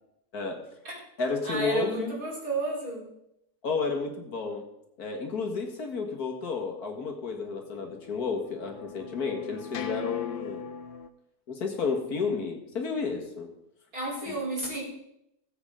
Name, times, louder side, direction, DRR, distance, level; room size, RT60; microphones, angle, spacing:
voice 1, 0.3-0.7 1.2-2.1 3.6-4.6 5.0-10.7 11.5-13.5 14.3-14.4, left 4 dB, 70° left, 3 dB, 2.2 m, -31 dB
voice 2, 1.4-3.0 13.9-14.8, right 2 dB, 60° right, -5 dB, 5.1 m, -32 dB
sound 1, 7.5-11.1, left 7 dB, 50° left, 0.6 m, -39 dB
20.0 x 7.9 x 3.8 m, 0.80 s
omnidirectional pair, 1.7 m